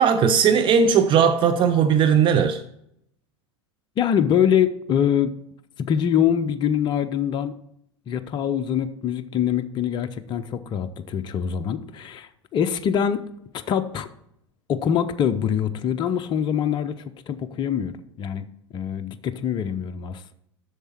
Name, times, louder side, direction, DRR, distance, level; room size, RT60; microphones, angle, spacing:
voice 1, 0.0-2.6, right 7 dB, 35° right, 0.6 m, -18 dB
voice 2, 4.0-5.3 5.8-7.6 8.1-13.2 13.7-14.1 14.7-18.5 18.7-20.3, left 9 dB, 30° left, 0.6 m, -24 dB
8.0 x 6.5 x 4.4 m
figure-of-eight pair, 85°, 15 cm